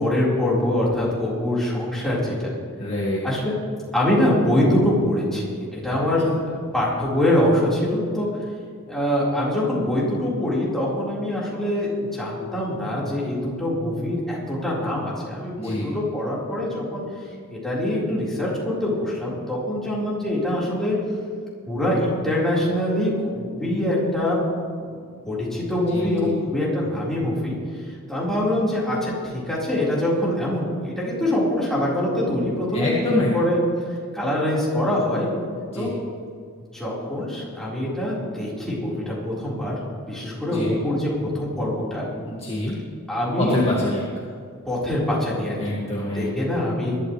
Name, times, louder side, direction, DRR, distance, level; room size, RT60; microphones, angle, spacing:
voice 1, 0.0-2.5 3.2-3.6 3.9-6.3 6.7-8.3 8.9-17.0 17.5-21.0 21.7-24.4 24.8-24.9 25.2-27.5 28.1-33.6 34.1-35.3 35.7-35.9 36.7-39.7 40.1-42.1 43.1-43.7 44.7-45.7 46.1-47.0, left 1 dB, ahead, -7 dB, 4.3 m, -24 dB
voice 2, 2.8-3.2 5.9-6.0 15.6-15.9 25.9-26.4 32.7-33.3 35.7-35.9 40.4-40.7 42.3-42.8 43.4-44.0 45.6-46.4, left 1 dB, 25° left, -5 dB, 2.0 m, -26 dB
21.5 x 12.5 x 3.3 m, 2.1 s
head